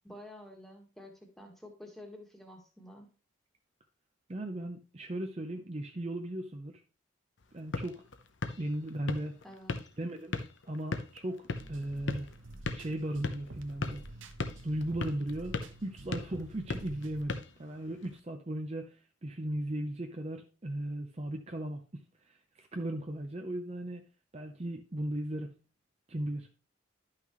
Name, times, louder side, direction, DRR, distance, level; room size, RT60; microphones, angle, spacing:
voice 1, 0.0-3.1 9.4-9.8, left 1 dB, ahead, 2 dB, 1.5 m, -50 dB
voice 2, 4.3-6.8 7.5-8.0 8.6-9.4 10.0-10.3 10.7-12.3 12.7-14.0 14.6-18.9 19.2-24.0 24.3-25.5 26.1-26.5, right 1 dB, 35° right, 4 dB, 0.6 m, -37 dB
sound 1, 7.4-18.2, left 3 dB, 70° left, 0.7 m, -40 dB
sound 2, 11.5-17.2, right 1 dB, 85° right, 1.0 m, -49 dB
11.0 x 5.8 x 3.1 m, 0.33 s
head